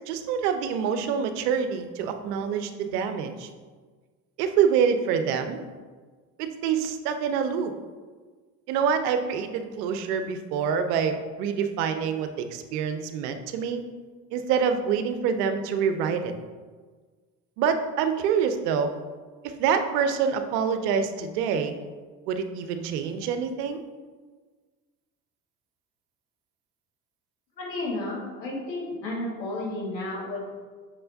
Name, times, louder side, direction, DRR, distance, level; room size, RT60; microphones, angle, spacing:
voice 1, 0.1-3.5 4.4-5.6 6.4-7.7 8.7-13.8 14.3-16.3 17.6-18.9 19.4-21.7 22.3-23.8, right 7 dB, 70° right, 8 dB, 0.8 m, -26 dB
voice 2, 27.6-30.4, left 2 dB, 85° left, -4 dB, 1.9 m, -32 dB
7.6 x 6.2 x 2.7 m, 1.4 s
figure-of-eight pair, 55°, 50 cm